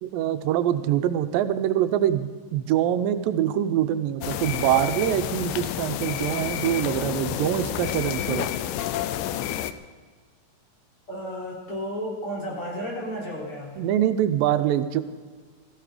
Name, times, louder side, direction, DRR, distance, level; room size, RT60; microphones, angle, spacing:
voice 1, 0.0-8.5 13.8-15.0, right 11 dB, 90° right, 10 dB, 2.5 m, -24 dB
sound 1, 4.2-9.7, left 11 dB, 80° left, 2.2 m, -29 dB
voice 2, 11.1-13.8, equal, 40° left, -4 dB, 4.4 m, -33 dB
17.0 x 14.5 x 5.0 m, 1.5 s
omnidirectional pair, 3.9 m